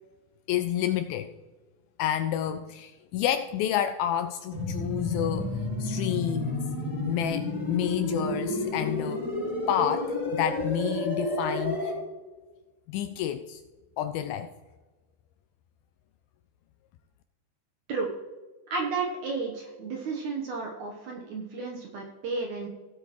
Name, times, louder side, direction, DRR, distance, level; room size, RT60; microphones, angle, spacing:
voice 1, 0.5-1.3 2.0-6.7 7.0-9.2 9.7-11.9 12.9-13.6 14.0-14.5, left 10 dB, 85° left, 9 dB, 2.1 m, -29 dB
sound 1, 4.5-11.9, left 2 dB, 20° left, 3.9 m, -31 dB
voice 2, 18.7-22.7, right 4 dB, 70° right, 0 dB, 1.8 m, -32 dB
17.0 x 8.2 x 3.0 m, 1.3 s
omnidirectional pair, 4.6 m